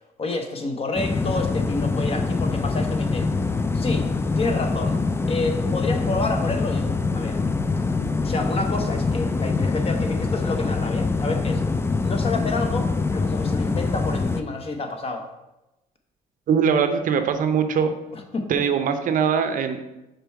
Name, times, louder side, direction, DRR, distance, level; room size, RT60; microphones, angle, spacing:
voice 1, 0.2-3.3 3.7-4.1 4.3-5.0 5.3-7.4 8.2-11.6 12.0-15.3 18.1-18.6, left 3 dB, 35° left, 5 dB, 0.8 m, -29 dB
sound 1, 1.0-14.4, left 3 dB, 15° left, 0.3 m, -24 dB
voice 2, 16.5-17.9 18.5-19.8, right 7 dB, 50° right, 8 dB, 0.6 m, -21 dB
5.2 x 4.4 x 4.5 m, 0.96 s
cardioid pair, 110°, 17 cm